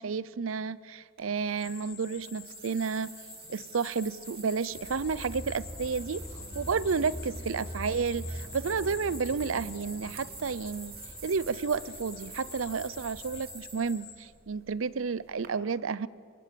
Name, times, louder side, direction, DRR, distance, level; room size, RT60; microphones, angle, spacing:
voice 1, 0.0-3.1 3.5-6.2 6.5-10.9 11.2-16.1, right 5 dB, 85° right, 20 dB, 0.6 m, -31 dB
sound 1, 1.2-15.5, right 9 dB, 50° right, 2.6 m, -50 dB
sound 2, 1.6-14.2, left 7 dB, 50° left, 4.7 m, -48 dB
sound 3, 4.7-13.4, equal, ahead, 5.5 m, -43 dB
25.5 x 21.0 x 6.9 m, 2.3 s
head